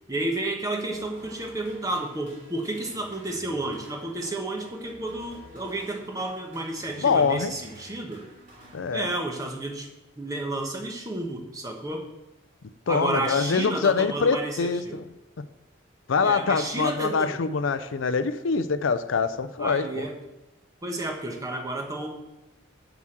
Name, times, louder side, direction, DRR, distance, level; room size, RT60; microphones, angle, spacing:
voice 1, 0.1-8.2 8.9-9.9 10.2-12.0 12.9-15.0 16.2-17.4 19.6-20.1 20.8-22.1, right 2 dB, 15° right, 2 dB, 1.2 m, -31 dB
sound 1, 0.9-9.5, right 1 dB, 40° right, 3.3 m, -50 dB
voice 2, 7.0-7.5 8.7-9.1 12.9-15.0 16.1-20.1, left 5 dB, 70° left, 12 dB, 0.5 m, -24 dB
7.2 x 6.1 x 7.7 m, 1.0 s
head